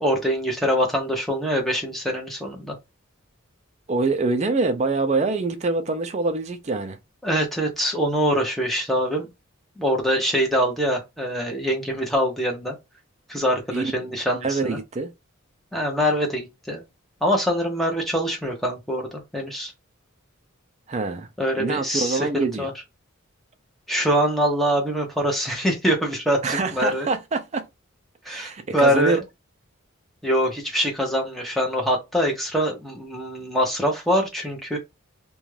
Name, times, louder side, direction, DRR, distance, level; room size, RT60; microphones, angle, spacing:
voice 1, 0.0-2.7 7.2-9.3 9.8-12.8 13.3-14.8 15.7-16.8 17.2-19.7 21.4-22.7 23.9-27.1 28.2-29.2 30.2-34.8, equal, ahead, 0.7 m, -24 dB
voice 2, 3.9-7.0 13.7-14.1 14.4-15.1 20.9-21.3 21.6-22.7 26.4-27.7 28.3-29.2, right 3 dB, 30° right, 0.4 m, -25 dB
2.5 x 2.2 x 3.1 m
head